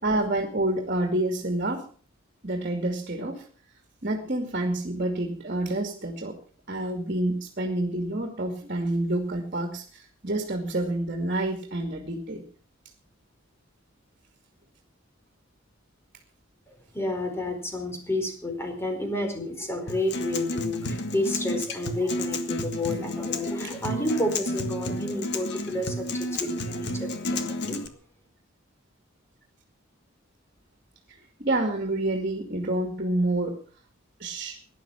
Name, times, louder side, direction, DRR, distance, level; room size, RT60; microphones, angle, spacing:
voice 1, 0.0-1.8 2.4-3.4 4.0-6.4 6.7-12.4 31.4-33.6 34.2-34.6, right 1 dB, 45° right, 4 dB, 2.5 m, -28 dB
voice 2, 16.7-27.9, left 1 dB, 15° left, 4 dB, 4.5 m, -30 dB
Acoustic guitar, 19.9-27.9, left 1 dB, 60° left, 1.7 m, -31 dB
17.5 x 11.5 x 5.9 m, 0.41 s
head